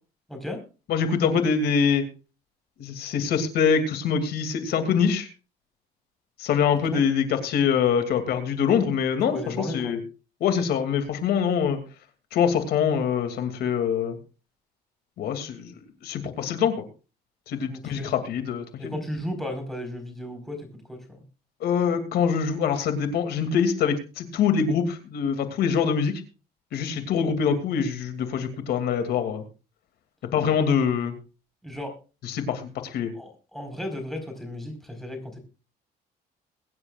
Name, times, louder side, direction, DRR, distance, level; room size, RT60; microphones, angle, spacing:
voice 1, 0.3-0.6 6.9-7.0 9.2-9.9 17.7-18.2 18.8-21.2 31.6-31.9 33.1-35.4, left 1 dB, ahead, 3 dB, 4.6 m, -35 dB
voice 2, 0.9-2.0 2.8-5.3 6.4-10.0 10.4-11.8 12.3-14.2 15.2-15.7 16.0-16.8 17.5-19.0 21.6-26.2 26.7-29.4 30.3-31.1 32.2-33.1, left 7 dB, 70° left, 8 dB, 2.6 m, -24 dB
22.5 x 9.9 x 2.4 m, 0.33 s
cardioid pair, 110°, 17 cm